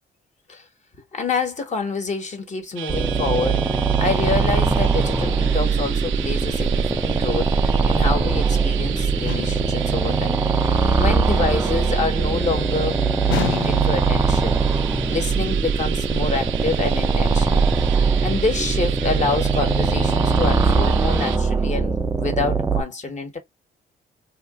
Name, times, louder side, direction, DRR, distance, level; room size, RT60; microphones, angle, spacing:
voice 1, 1.1-10.4 11.0-17.7 18.2-23.4, left 4 dB, 35° left, 1.3 m, -27 dB
sound 1, 2.8-21.4, right 12 dB, 75° right, 0.4 m, -34 dB
sound 2, 2.9-22.8, right 4 dB, 15° right, 0.4 m, -21 dB
sound 3, 9.3-9.8 13.3-14.1, left 10 dB, 75° left, 0.5 m, -28 dB
2.8 x 2.5 x 2.4 m
cardioid pair, 90°, 20 cm